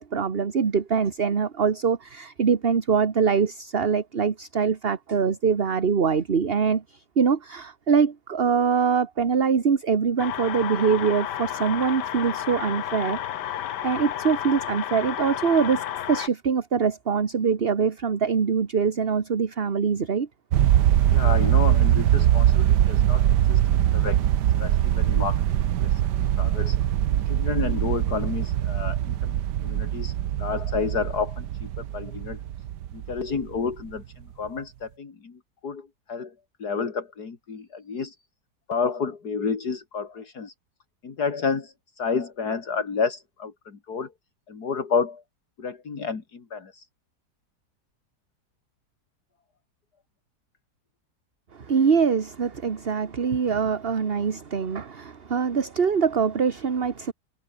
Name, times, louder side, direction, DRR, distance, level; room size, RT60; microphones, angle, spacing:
voice 1, 0.0-13.2 13.8-20.3 51.5-57.1, right 6 dB, 40° right, 1.4 m, -23 dB
sound 1, 10.2-16.3, left 11 dB, 85° left, 1.5 m, -31 dB
sound 2, 20.5-33.8, right 11 dB, 85° right, 1.5 m, -22 dB
voice 2, 21.1-24.2 24.6-26.8 27.3-29.3 29.6-32.4 32.9-36.3 36.6-38.2 38.7-40.5 41.0-44.1 44.5-45.2 45.6-46.9, left 5 dB, 70° left, 3.0 m, -30 dB
omnidirectional pair, 1.8 m